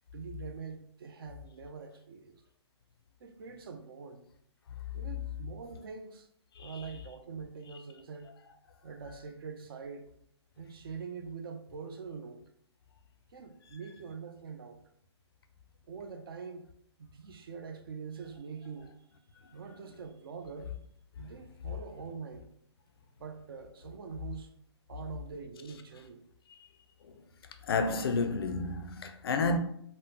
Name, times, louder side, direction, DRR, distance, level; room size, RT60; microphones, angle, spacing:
voice 1, 0.1-2.4 3.2-4.3 4.9-6.3 6.6-8.3 8.8-10.1 10.6-12.4 13.3-14.8 15.8-16.7 17.0-18.9 19.5-20.8 21.2-22.5 23.2-24.6 24.9-26.2, right 5 dB, 50° right, 0.4 m, -44 dB
voice 2, 27.6-29.6, left 3 dB, 55° left, 0.4 m, -31 dB
3.5 x 2.0 x 2.7 m
hypercardioid pair, 160°, 15 cm